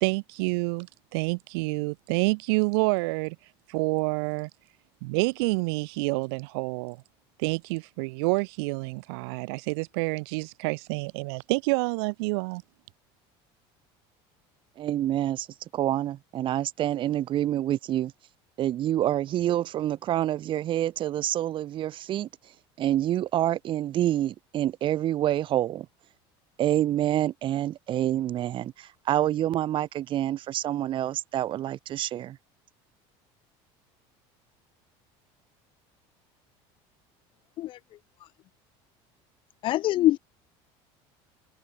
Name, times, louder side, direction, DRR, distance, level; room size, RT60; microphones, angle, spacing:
voice 1, 0.0-3.4 3.7-4.5 5.0-7.0 7.4-12.6, right 29 dB, 80° right, 1.3 m, -28 dB
voice 2, 14.8-18.1 18.6-25.9 26.6-32.4, right 12 dB, 40° right, 6.4 m, -27 dB
voice 3, 39.6-40.2, left 15 dB, 40° left, 0.5 m, -23 dB
cardioid pair, 150°, 13 cm